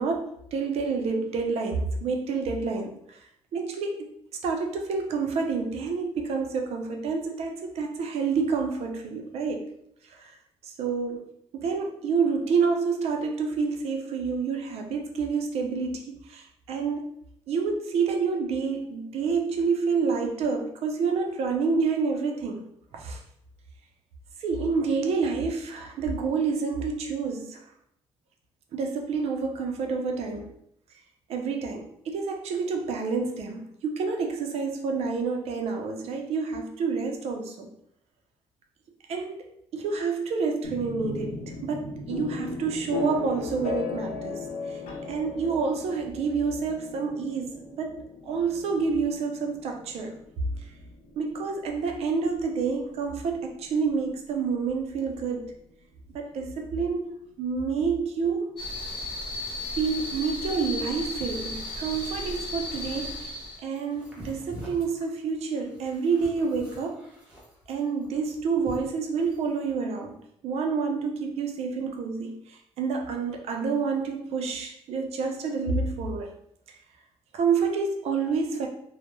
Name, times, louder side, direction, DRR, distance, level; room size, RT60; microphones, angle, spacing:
voice 1, 0.0-3.2 3.5-4.1 4.4-9.6 10.1-10.3 10.6-11.3 11.5-17.0 17.5-22.6 22.9-23.2 24.4-27.6 28.7-30.5 31.3-37.7 39.1-39.4 39.7-41.4 41.6-44.8 45.1-50.2 51.2-55.5 56.1-58.5 59.8-63.3 63.6-67.1 67.7-70.2 70.4-76.3 77.3-78.7, right 5 dB, 60° right, 3 dB, 0.4 m, -28 dB
sound 1, 40.6-54.4, left 3 dB, 85° left, 0.6 m, -37 dB
sound 2, 58.6-63.6, left 2 dB, 50° left, 0.9 m, -34 dB
sound 3, 63.7-69.5, equal, 10° right, 0.6 m, -46 dB
2.2 x 2.0 x 2.9 m, 0.74 s
cardioid pair, 140°, 12 cm